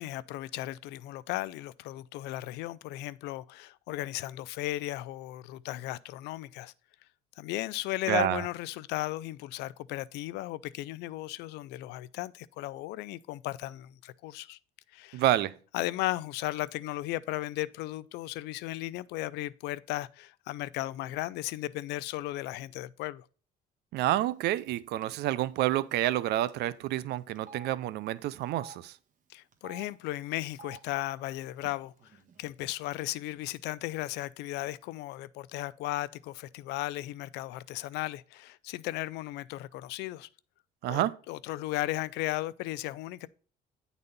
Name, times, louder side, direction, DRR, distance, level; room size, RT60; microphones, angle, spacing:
voice 1, 0.0-6.7 7.4-14.6 14.9-15.2 15.7-23.3 29.3-40.3 40.9-43.3, left 16 dB, 90° left, 0.4 m, -36 dB
voice 2, 8.1-8.5 15.1-15.6 23.9-29.0 40.8-41.2, right 14 dB, 75° right, 0.5 m, -28 dB
Telephone, 24.6-24.8 25.0-25.2 26.1-26.2 26.5-26.6 27.3-27.7 28.4-28.7 29.5-29.8 30.5-30.8 31.6-31.7 32.0-32.7, right 4 dB, 50° right, 1.4 m, -49 dB
9.7 x 4.1 x 5.3 m
cardioid pair, 110°, 17 cm